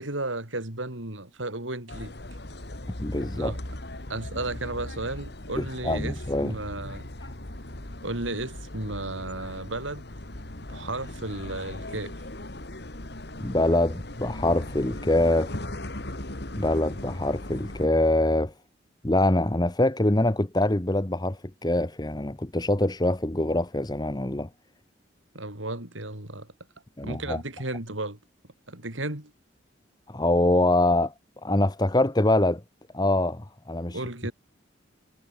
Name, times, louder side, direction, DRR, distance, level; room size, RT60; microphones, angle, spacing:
voice 1, 0.0-2.1 3.3-3.6 4.1-7.1 8.0-10.0 10.7-12.2 25.3-26.5 27.0-28.2 28.7-29.3 33.9-34.3, right 2 dB, 80° right, 5.2 m, -34 dB
sound 1, 1.9-17.9, left 1 dB, 55° left, 2.5 m, -38 dB
voice 2, 3.0-3.5 5.6-6.5 13.4-15.6 16.6-18.5 19.0-24.5 27.0-27.4 30.1-31.1 31.4-32.6 32.9-34.0, left 1 dB, 20° left, 1.0 m, -24 dB
head